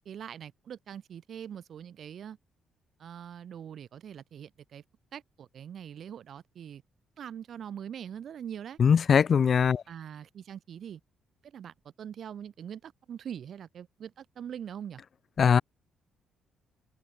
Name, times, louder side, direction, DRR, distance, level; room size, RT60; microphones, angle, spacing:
voice 1, 0.0-2.4 3.0-4.8 5.1-6.8 7.2-8.8 9.9-11.0 11.4-15.0, right 9 dB, 60° right, 3.3 m, -43 dB
voice 2, 8.8-9.8 15.4-15.6, left 7 dB, 50° left, 0.4 m, -21 dB
cardioid pair, 90°, 0 cm